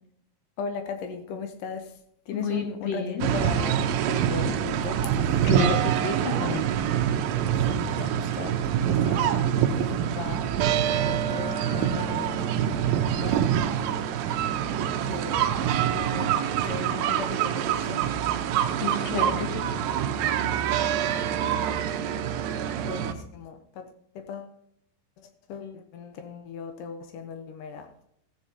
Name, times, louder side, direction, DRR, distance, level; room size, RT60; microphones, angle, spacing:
voice 1, 0.6-2.0 2.3-5.5 7.7-10.6 11.1-12.9 13.2-13.6 15.0-16.4 16.6-18.1 22.8-23.9 24.2-24.6 25.2-27.9, left 6 dB, 85° left, 6 dB, 1.8 m, -38 dB
voice 2, 2.3-3.3 5.4-6.7 18.8-19.7, left 4 dB, 45° left, 1 dB, 2.8 m, -30 dB
sound 1, 3.2-23.1, right 9 dB, 85° right, 2.0 m, -25 dB
15.0 x 9.3 x 2.8 m, 0.69 s
omnidirectional pair, 4.9 m